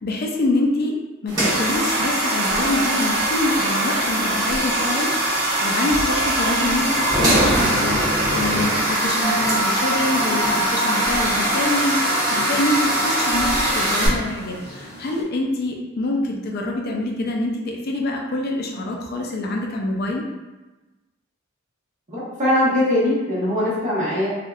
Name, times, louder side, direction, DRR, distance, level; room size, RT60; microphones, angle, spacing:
voice 1, 0.0-1.0 1.2-5.1 5.6-20.2, left 2 dB, 50° left, 0 dB, 0.4 m, -25 dB
sound 1, 1.3-14.1, right 1 dB, 20° right, 1.2 m, -21 dB
sound 2, 9.2-15.2, right 1 dB, 10° left, 1.0 m, -30 dB
voice 2, 22.1-24.4, left 1 dB, 35° right, -7 dB, 1.0 m, -21 dB
3.4 x 2.6 x 2.4 m, 1.1 s
head